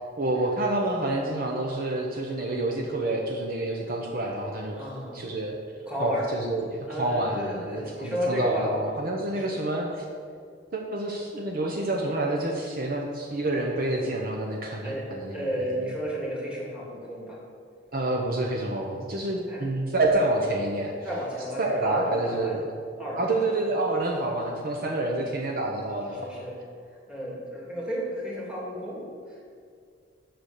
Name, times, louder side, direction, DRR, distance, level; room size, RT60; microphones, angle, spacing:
voice 1, 0.2-4.8 5.1-5.6 6.0-10.0 10.7-15.5 17.9-20.9 21.6-22.6 23.2-26.2, right 2 dB, 45° right, 0 dB, 0.8 m, -28 dB
voice 2, 4.8-5.3 5.9-6.2 6.9-8.7 9.3-9.4 13.5-14.0 14.8-17.4 19.5-19.7 21.0-22.6 23.0-23.7 24.9-25.3 26.1-26.6 26.9-29.5, equal, 5° right, -4 dB, 2.1 m, -33 dB
8.0 x 5.9 x 6.6 m, 2.2 s
head